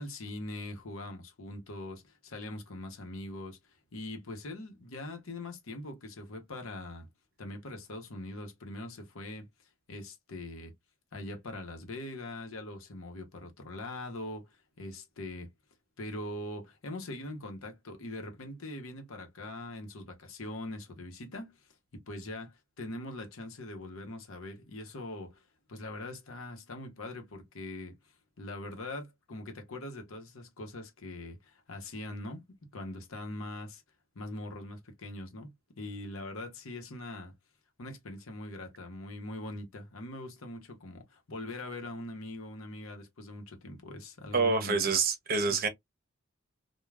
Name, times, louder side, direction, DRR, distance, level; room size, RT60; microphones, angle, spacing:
voice 1, 0.0-7.1 7.4-9.4 9.9-10.7 11.1-15.5 16.0-21.7 21.9-25.4 25.7-28.0 28.4-32.4 32.7-33.8 34.1-37.3 37.8-44.9 45.5-45.7, left 1 dB, 80° left, 0.9 m, -42 dB
voice 2, 44.3-45.7, right 4 dB, 45° right, 0.7 m, -27 dB
3.2 x 2.3 x 2.3 m
head